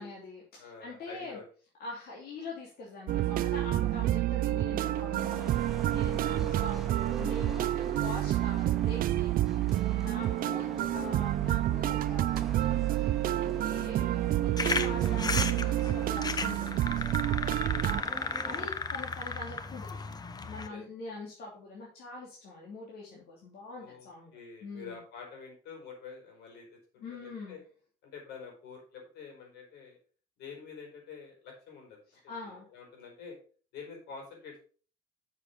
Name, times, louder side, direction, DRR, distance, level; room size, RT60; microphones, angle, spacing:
voice 1, 0.0-1.4 1.8-9.6 10.0-10.7 10.9-12.8 13.0-16.8 17.8-20.0 20.5-24.3 24.6-25.0 27.0-27.6 32.1-32.7, left 3 dB, 65° left, -4 dB, 2.9 m, -44 dB
voice 2, 0.6-1.4 6.4-6.6 10.2-10.6 15.1-15.2 17.5-17.9 20.7-21.1 23.8-27.6 28.0-30.0 30.4-32.0 32.2-33.4 33.7-34.6, left 5 dB, 85° left, 1 dB, 4.8 m, -48 dB
sound 1, 3.1-18.0, right 14 dB, 55° right, 0.4 m, -29 dB
sound 2, 5.2-18.7, right 2 dB, ahead, 1.9 m, -45 dB
sound 3, 14.6-20.7, left 4 dB, 25° left, 0.9 m, -35 dB
7.1 x 6.5 x 5.1 m, 0.40 s
cardioid pair, 110°, 17 cm